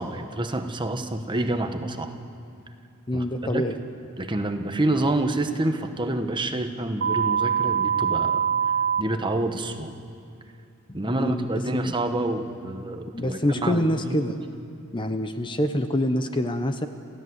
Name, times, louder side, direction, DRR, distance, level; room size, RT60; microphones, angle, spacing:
voice 1, 0.0-2.1 3.1-3.6 4.2-8.4 9.0-9.9 10.9-14.2, right 2 dB, 20° right, 6 dB, 1.1 m, -28 dB
voice 2, 3.1-3.7 11.0-11.9 13.1-14.4 14.9-16.9, left 1 dB, 20° left, 8 dB, 0.8 m, -26 dB
sound 1, 7.0-9.0, right 7 dB, 45° right, 0.5 m, -23 dB
28.0 x 15.5 x 8.1 m, 2.4 s
head